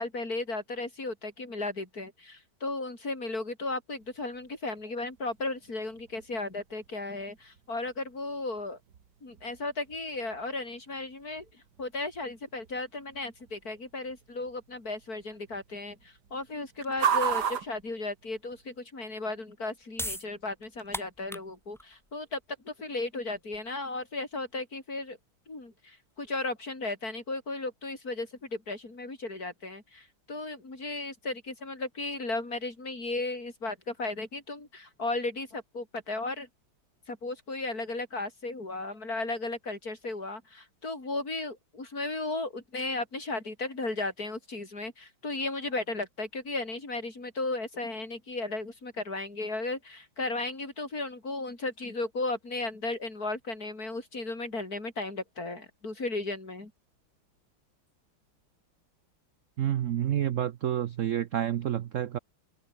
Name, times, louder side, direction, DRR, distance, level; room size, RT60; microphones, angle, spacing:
voice 1, 0.0-8.8 9.2-11.5 11.8-22.4 22.7-25.2 25.5-36.5 37.1-56.7, left 2 dB, 45° left, 5.6 m, -35 dB
sound 1, 4.0-18.8, right 7 dB, 55° right, 2.0 m, -39 dB
sound 2, 19.5-26.3, equal, ahead, 6.9 m, -42 dB
voice 2, 59.6-62.2, right 11 dB, 75° right, 0.7 m, -29 dB
omnidirectional pair, 2.1 m